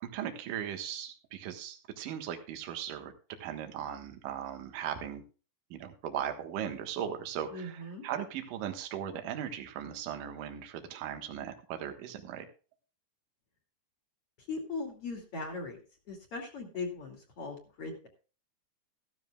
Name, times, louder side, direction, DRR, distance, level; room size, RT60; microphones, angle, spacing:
voice 1, 0.0-3.1 3.4-5.2 5.7-12.5, right 9 dB, 65° right, 6 dB, 2.8 m, -38 dB
voice 2, 7.5-8.0 14.5-15.8 16.1-18.1, left 3 dB, 40° left, 2 dB, 2.9 m, -39 dB
15.0 x 12.5 x 2.4 m, 0.36 s
omnidirectional pair, 4.6 m